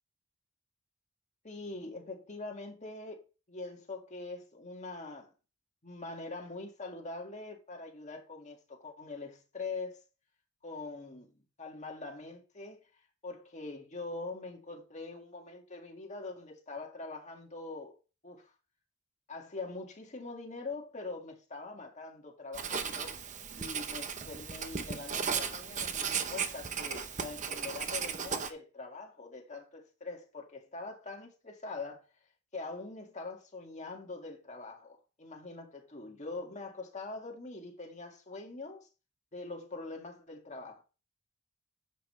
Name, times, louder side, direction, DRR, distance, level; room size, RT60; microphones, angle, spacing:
voice 1, 1.4-5.3 5.8-10.0 10.6-12.8 13.2-18.0 18.2-18.5 19.3-23.2 23.6-32.0 32.5-38.9 39.3-40.8, left 3 dB, 30° left, 1.8 m, -43 dB
Writing, 22.5-28.5, right 6 dB, 35° right, 0.8 m, -36 dB
10.0 x 7.3 x 3.2 m
head